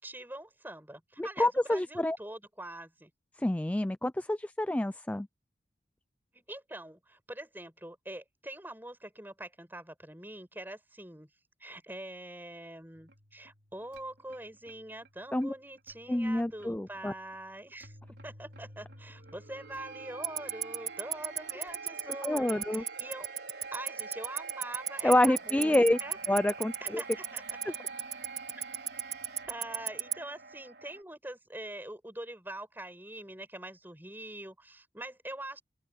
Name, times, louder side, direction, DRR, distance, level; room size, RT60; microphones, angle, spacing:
voice 1, 0.0-3.1 6.3-11.3 11.6-23.3 23.7-26.2 26.8-27.7 29.5-35.6, right 1 dB, 10° right, 7.3 m, -44 dB
voice 2, 1.2-2.2 3.4-5.3 15.3-15.5 16.1-17.1 22.2-22.8 25.0-26.0 26.3-27.0, left 1 dB, 10° left, 0.3 m, -27 dB
sound 1, 12.9-31.0, right 4 dB, 65° right, 4.5 m, -47 dB
Tick-tock, 20.2-30.1, right 10 dB, 35° right, 2.5 m, -30 dB
open air
head